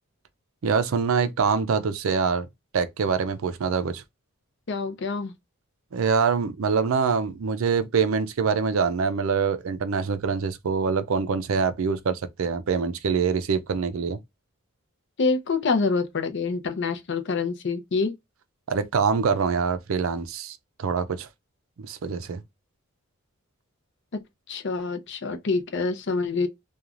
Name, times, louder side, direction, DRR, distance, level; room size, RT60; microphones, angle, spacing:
voice 1, 0.6-2.5 2.7-4.0 5.9-14.2 18.7-21.3 21.8-22.4, right 5 dB, 70° right, 0.4 m, -25 dB
voice 2, 4.7-5.3 15.2-18.1 24.1-24.2 24.5-26.5, left 4 dB, 55° left, 0.6 m, -26 dB
3.0 x 2.3 x 2.4 m
head